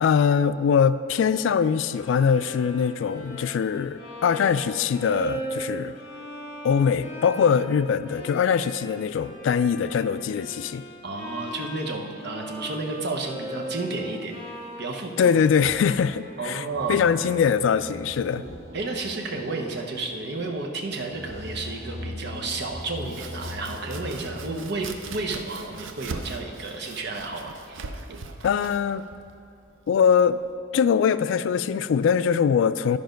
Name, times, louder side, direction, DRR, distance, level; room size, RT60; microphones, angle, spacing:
voice 1, 0.0-5.9 6.6-10.8 15.2-18.4 28.4-29.0 29.9-30.4 30.7-33.0, left 7 dB, 75° left, 15 dB, 0.3 m, -22 dB
Bowed string instrument, 1.9-17.9, right 1 dB, 50° left, 1.9 m, -39 dB
voice 2, 11.0-14.3 14.8-15.4 16.4-17.0 18.4-27.9, right 3 dB, 60° right, 1 dB, 0.9 m, -32 dB
sound 1, 15.6-24.6, left 1 dB, 20° left, 1.9 m, -41 dB
Domestic sounds home sounds, 22.8-30.5, right 3 dB, 85° right, 0.6 m, -41 dB
11.5 x 5.1 x 5.2 m, 2.5 s
head